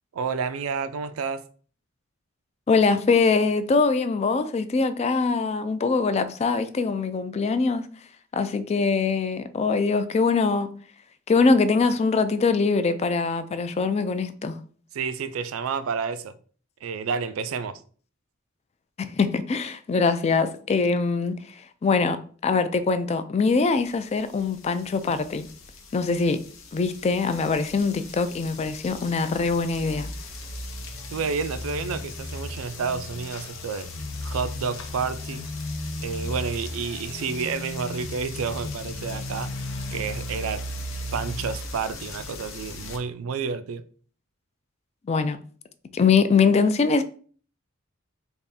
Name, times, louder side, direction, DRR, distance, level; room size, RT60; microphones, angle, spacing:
voice 1, 0.1-1.4 14.9-16.3 16.8-17.8 31.1-33.9 34.2-35.5 36.0-39.5 39.9-40.6 41.1-43.8, right 5 dB, 90° right, 0.4 m, -30 dB
voice 2, 2.7-7.9 8.3-10.7 11.3-14.6 19.0-21.4 21.8-22.2 22.4-25.5 25.9-26.4 26.7-30.1 45.1-45.4 45.9-47.0, left 4 dB, 30° left, 0.3 m, -23 dB
sound 1, 24.4-43.0, left 2 dB, 80° left, 0.7 m, -36 dB
3.5 x 2.5 x 4.0 m
head